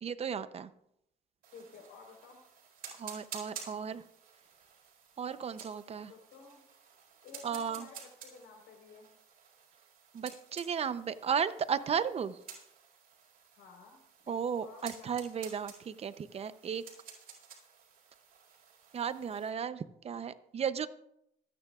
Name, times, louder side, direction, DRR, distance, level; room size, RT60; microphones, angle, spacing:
voice 1, 0.0-0.7 3.0-4.0 5.2-6.1 7.4-7.8 10.1-12.4 14.3-16.8 18.9-20.9, right 7 dB, 35° right, 13 dB, 0.7 m, -35 dB
sound 1, 1.4-19.5, right 7 dB, 60° right, 4.8 m, -52 dB
voice 2, 1.5-2.4 6.1-6.6 7.2-9.1 13.5-14.0 14.3-15.2, left 5 dB, 90° left, 2 dB, 4.2 m, -53 dB
25.5 x 9.7 x 2.4 m, 0.79 s
cardioid pair, 110°, 17 cm